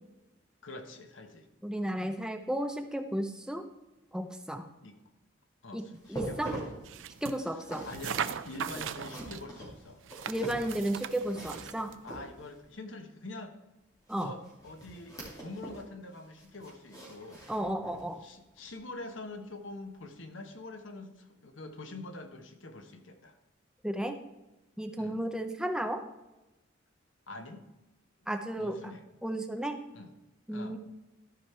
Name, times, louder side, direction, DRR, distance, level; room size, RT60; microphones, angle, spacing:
voice 1, 0.6-1.5 4.8-5.0 5.6-6.6 7.4-10.0 12.0-13.5 14.1-17.4 18.2-23.3 25.0-25.2 27.3-27.7 28.6-29.0 29.9-30.1 30.5-30.8, left 2 dB, 75° left, 6 dB, 1.1 m, -45 dB
voice 2, 1.6-3.6 4.1-4.7 5.7-6.5 7.2-7.8 10.3-11.9 14.1-14.3 17.5-18.2 23.8-24.2 24.8-26.0 28.3-28.8 29.2-29.8 30.5-30.8, right 1 dB, 5° right, 6 dB, 0.5 m, -33 dB
sound 1, 5.9-12.7 14.1-15.9 16.2-18.1 18.6-18.7 19.3-19.4, right 1 dB, 20° left, 2.7 m, -44 dB
sound 2, 6.8-7.4 7.9-9.4 10.0-12.0, right 8 dB, 75° right, 0.4 m, -39 dB
13.0 x 5.2 x 4.4 m, 1.0 s
head